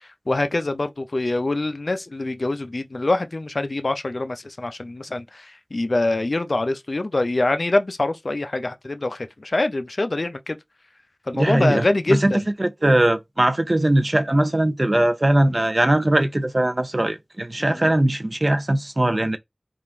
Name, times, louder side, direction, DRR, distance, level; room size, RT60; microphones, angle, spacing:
voice 1, 0.0-10.6 11.3-12.5 17.6-17.9, left 2 dB, 70° left, 0.6 m, -24 dB
voice 2, 11.3-12.3 12.6-19.4, right 1 dB, 45° right, 0.6 m, -20 dB
3.6 x 2.5 x 4.4 m
wide cardioid pair, 50°, 0 cm